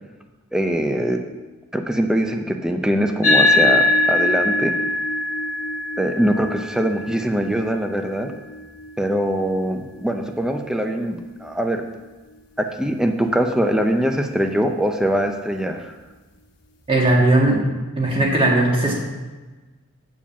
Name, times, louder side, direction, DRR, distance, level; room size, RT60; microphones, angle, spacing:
voice 1, 0.5-1.2 1.7-4.7 6.0-8.3 9.0-11.8 12.6-15.9, equal, 5° right, 5 dB, 0.5 m, -22 dB
sound 1, 3.2-12.0, left 2 dB, 35° left, 1.4 m, -23 dB
voice 2, 16.9-17.6 18.0-18.9, right 2 dB, 25° right, -2 dB, 1.7 m, -17 dB
8.9 x 4.9 x 7.1 m, 1.3 s
head